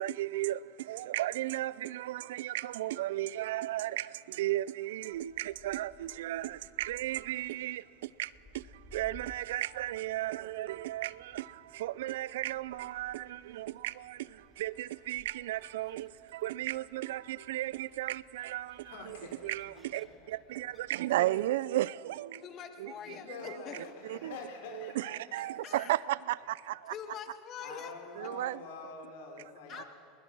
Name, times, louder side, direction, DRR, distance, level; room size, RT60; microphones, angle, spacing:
voice 1, 0.0-19.2 19.4-22.4 22.8-23.2 23.5-23.8 24.1-24.3 24.8-26.9 28.2-28.6 29.8-29.9, right 15 dB, 80° right, 0.4 m, -35 dB
Gull seagull, 5.1-20.8, left 1 dB, 10° left, 2.6 m, -60 dB
voice 2, 18.8-20.7 22.9-25.8 27.6-29.9, left 4 dB, 80° left, 3.6 m, -47 dB
voice 3, 22.4-23.8 25.4-25.9 26.9-27.9 29.7-29.8, left 8 dB, 40° left, 1.8 m, -44 dB
21.5 x 20.5 x 6.2 m
supercardioid pair, 120°, 0 cm